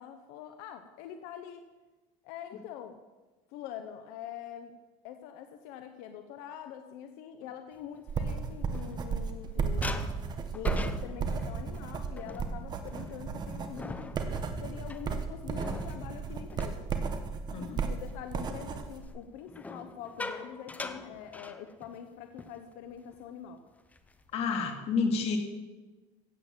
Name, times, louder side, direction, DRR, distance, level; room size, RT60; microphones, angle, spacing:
voice 1, 0.0-1.7 2.2-3.0 3.5-4.7 5.0-10.1 10.5-14.2 14.6-16.9 17.6-23.6, left 9 dB, 85° left, 8 dB, 1.0 m, -44 dB
sound 1, 7.9-9.4 9.8-17.6 18.0-18.3 19.5-22.1 22.4-22.6 22.9-23.2 23.7-24.3, left 3 dB, 10° left, 0.7 m, -43 dB
sound 2, 8.1-19.0, right 5 dB, 30° right, 1.3 m, -34 dB
voice 2, 24.3-25.4, left 4 dB, 50° left, 4 dB, 2.4 m, -29 dB
15.5 x 8.5 x 7.4 m, 1.2 s
cardioid pair, 155°, 14 cm